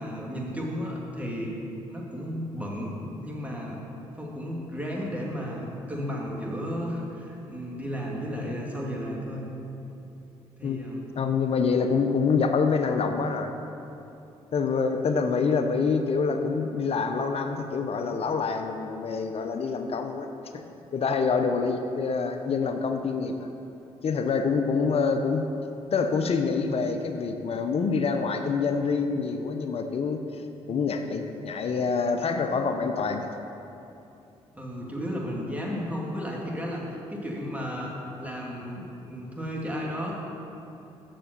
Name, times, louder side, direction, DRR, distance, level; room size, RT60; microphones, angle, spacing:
voice 1, 0.0-1.6 1.9-3.0 3.2-3.8 4.2-9.5 10.6-11.0 34.5-36.8 37.1-40.1, equal, 10° right, -3 dB, 2.5 m, -33 dB
voice 2, 11.2-13.5 14.5-20.3 20.5-20.6 20.9-23.5 24.0-25.4 25.9-30.2 30.7-33.3, left 5 dB, 50° left, 6 dB, 0.7 m, -26 dB
7.6 x 6.7 x 6.8 m, 2.8 s
supercardioid pair, 55°, 13 cm